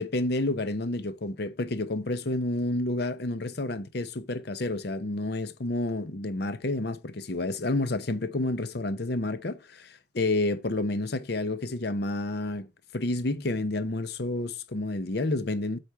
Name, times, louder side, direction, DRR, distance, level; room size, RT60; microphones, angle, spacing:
voice 1, 0.0-12.7 12.9-15.8, left 2 dB, 55° left, 0.8 m, -30 dB
8.3 x 4.3 x 4.5 m
head